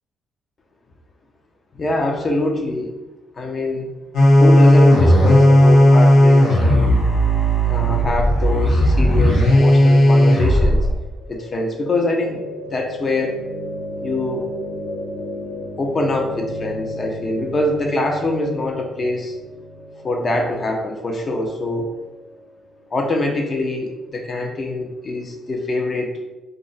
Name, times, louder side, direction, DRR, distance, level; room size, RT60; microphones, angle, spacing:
voice 1, 1.8-3.0 3.4-3.9 4.4-6.9 7.7-10.8 11.3-13.4 14.0-14.5 15.8-19.4 20.0-21.9 22.9-26.1, left 2 dB, 40° left, 2 dB, 0.6 m, -24 dB
sound 1, 4.1-10.9, equal, 75° left, 0.8 m, -13 dB
sound 2, 11.2-23.2, left 1 dB, 90° right, 0.5 m, -34 dB
2.4 x 2.0 x 3.9 m, 1.0 s
cardioid pair, 90°, 0 cm